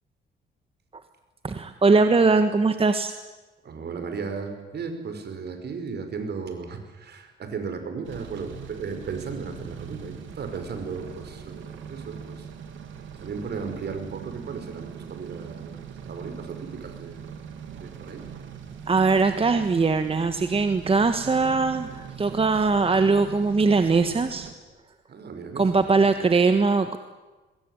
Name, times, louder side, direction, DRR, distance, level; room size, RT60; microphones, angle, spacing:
voice 1, 1.4-3.1 18.9-24.5 25.5-27.0, right 4 dB, 30° right, 9 dB, 1.5 m, -21 dB
voice 2, 3.6-12.5 13.2-17.4 17.7-18.2 25.1-26.1, right 5 dB, 55° right, 7 dB, 5.4 m, -35 dB
sound 1, 8.0-24.5, right 7 dB, 75° right, 3.1 m, -41 dB
23.0 x 21.0 x 9.8 m, 1.2 s
cardioid pair, 90°, 20 cm